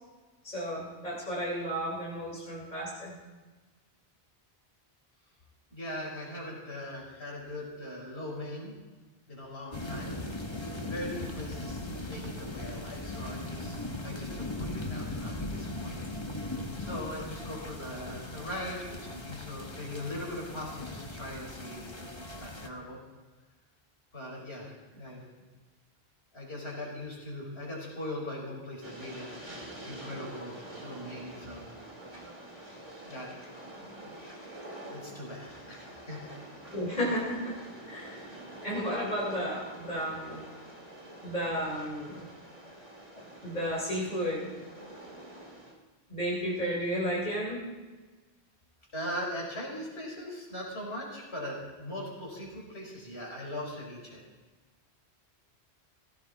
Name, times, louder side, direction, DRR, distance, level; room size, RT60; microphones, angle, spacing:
voice 1, 0.4-3.2 36.7-37.5 37.9-38.2 38.6-40.4 41.2-42.3 43.4-44.5 46.1-47.6, equal, 40° left, -4 dB, 3.7 m, -33 dB
voice 2, 5.7-8.7 9.3-10.1 10.8-13.8 14.0-16.1 16.8-23.0 24.1-25.2 26.3-29.3 29.8-31.6 33.0-33.3 34.1-34.2 34.8-36.4 48.9-54.2, left 1 dB, 75° left, -2 dB, 4.8 m, -40 dB
sound 1, 9.7-22.7, left 2 dB, 25° left, 1.4 m, -39 dB
Train, 28.8-45.7, right 1 dB, 30° right, 2.7 m, -46 dB
18.0 x 17.0 x 4.1 m, 1.3 s
omnidirectional pair, 1.1 m